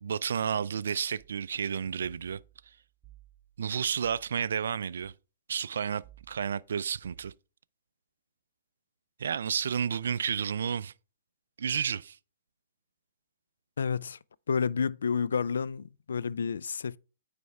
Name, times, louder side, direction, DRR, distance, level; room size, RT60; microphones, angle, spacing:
voice 1, 0.0-2.4 3.6-5.1 5.5-7.3 9.2-10.9 11.6-12.2, right 7 dB, 70° right, 0.3 m, -31 dB
sound 1, 2.0-5.1 6.0-7.3, right 11 dB, 5° right, 1.9 m, -58 dB
voice 2, 13.8-14.2 14.5-17.0, left 6 dB, 75° left, 0.3 m, -30 dB
9.2 x 3.4 x 4.6 m
hypercardioid pair, 125°, 0 cm